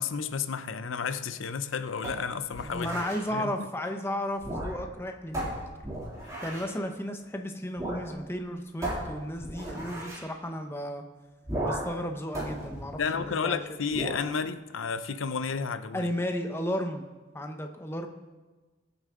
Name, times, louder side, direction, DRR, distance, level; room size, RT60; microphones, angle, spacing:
voice 1, 0.0-2.9 3.3-3.5 6.2-6.4 13.0-16.1, left 6 dB, 90° left, 11 dB, 0.6 m, -32 dB
sound 1, 2.0-3.2 4.3-5.0 5.3-6.8 7.8-8.1 8.3-8.4 8.8-10.3 11.5-12.0 12.3-13.5 13.9-14.3, right 1 dB, 15° right, 2.6 m, -35 dB
voice 2, 2.7-5.6 6.4-11.0 11.6-13.6 13.9-14.1 15.9-17.0 17.3-18.1, equal, 10° left, 4 dB, 0.8 m, -34 dB
21.0 x 7.0 x 3.7 m, 1.2 s
head